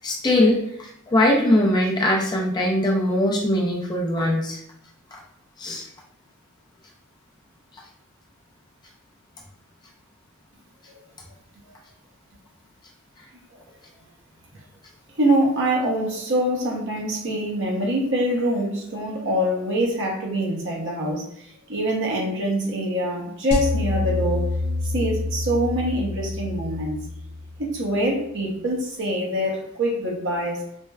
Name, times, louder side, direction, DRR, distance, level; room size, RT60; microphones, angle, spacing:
voice 1, 0.0-4.6 5.6-5.9, left 1 dB, 20° left, -2 dB, 0.4 m, -21 dB
voice 2, 15.2-24.5 24.8-27.0 27.6-30.6, right 1 dB, 55° right, -1 dB, 0.8 m, -24 dB
sound 1, 23.5-27.8, left 2 dB, 75° left, 0.4 m, -27 dB
4.3 x 2.1 x 2.3 m, 0.76 s
head